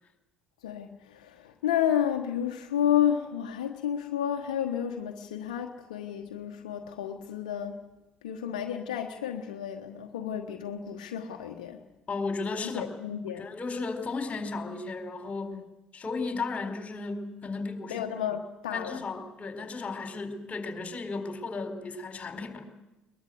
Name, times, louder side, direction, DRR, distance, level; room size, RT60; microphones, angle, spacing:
voice 1, 0.6-7.8 8.2-11.8 12.6-13.5 15.5-15.6 17.9-19.0, left 9 dB, 80° left, 4 dB, 1.3 m, -31 dB
voice 2, 12.1-12.9 13.3-15.6 15.9-18.0 18.7-22.6, left 3 dB, 35° left, 6 dB, 4.3 m, -34 dB
21.5 x 21.0 x 8.0 m, 0.99 s
hypercardioid pair, 60°, 4 cm